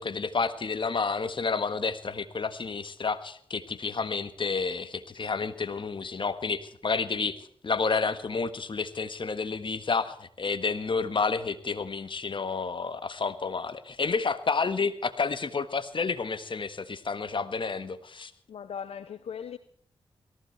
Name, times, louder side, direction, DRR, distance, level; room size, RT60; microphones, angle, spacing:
voice 1, 0.0-18.3, left 4 dB, 55° left, 12 dB, 1.5 m, -30 dB
voice 2, 18.5-19.6, left 7 dB, 80° left, 14 dB, 0.7 m, -38 dB
18.0 x 15.0 x 4.6 m, 0.62 s
cardioid pair, 45°, 10 cm